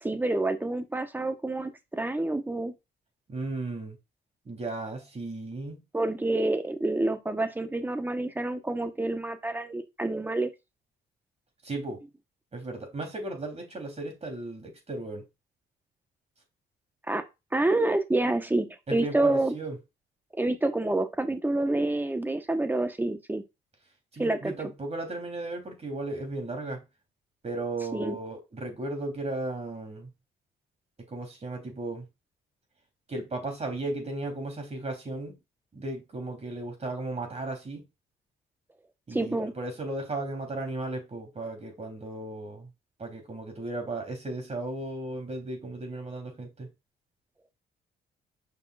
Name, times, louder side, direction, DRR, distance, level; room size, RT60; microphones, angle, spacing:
voice 1, 0.0-2.7 5.9-10.5 17.1-17.2 17.5-19.5 20.3-23.4 24.2-24.5 27.9-28.2 39.1-39.5, right 2 dB, 10° right, 1.1 m, -28 dB
voice 2, 3.3-4.0 4.4-5.8 11.6-12.0 12.5-15.2 18.9-19.8 24.1-26.8 27.4-30.1 31.1-32.0 33.1-35.3 35.7-37.8 39.1-42.7 43.0-46.7, right 2 dB, 35° right, 3.4 m, -35 dB
7.3 x 5.5 x 2.4 m
cardioid pair, 90°, 20 cm